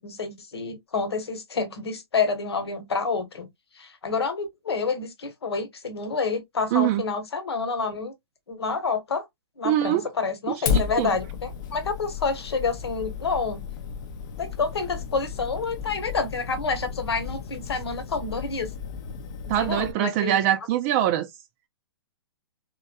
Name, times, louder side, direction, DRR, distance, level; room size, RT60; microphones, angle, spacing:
voice 1, 0.0-3.5 3.8-8.1 8.5-9.2 9.6-13.6 14.4-18.7 19.6-20.4, left 4 dB, 75° left, 1.2 m, -28 dB
voice 2, 6.7-7.0 9.6-10.1 10.5-11.1 19.5-21.3, right 12 dB, 30° right, 0.4 m, -23 dB
Fire, 10.7-19.9, left 7 dB, 45° left, 0.6 m, -33 dB
3.5 x 3.1 x 2.2 m
hypercardioid pair, 130°, 14 cm